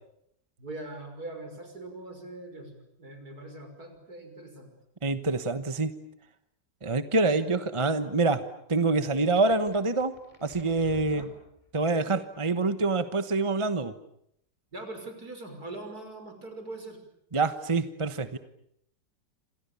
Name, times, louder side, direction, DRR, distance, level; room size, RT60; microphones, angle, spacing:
voice 1, 0.6-4.7 11.0-11.3 14.7-17.0, right 2 dB, 55° right, 6 dB, 6.3 m, -42 dB
voice 2, 5.0-6.0 6.8-8.4 8.7-10.1 10.4-11.3 11.7-13.9 17.3-18.4, right 3 dB, 20° right, 11 dB, 1.0 m, -26 dB
sound 1, 9.1-11.9, left 1 dB, 20° left, 3.2 m, -51 dB
29.0 x 26.5 x 7.0 m, 0.74 s
omnidirectional pair, 1.9 m